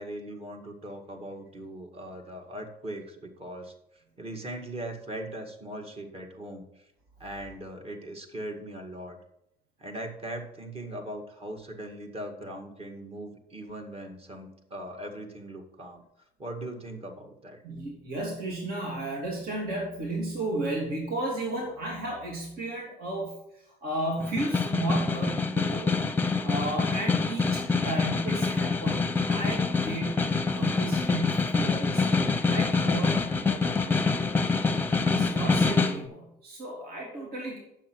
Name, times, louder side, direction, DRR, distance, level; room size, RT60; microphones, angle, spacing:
voice 1, 0.0-3.7 4.2-6.6 7.2-9.2 9.8-16.0 16.4-17.6, right 1 dB, 35° right, 3 dB, 2.0 m, -39 dB
voice 2, 17.6-26.0 26.4-34.3 35.1-37.6, right 1 dB, 65° right, -2 dB, 3.0 m, -34 dB
Snare drum, 24.2-36.0, left 4 dB, 10° left, 0.8 m, -26 dB
9.4 x 7.5 x 4.7 m, 0.83 s
cardioid pair, 110°, 17 cm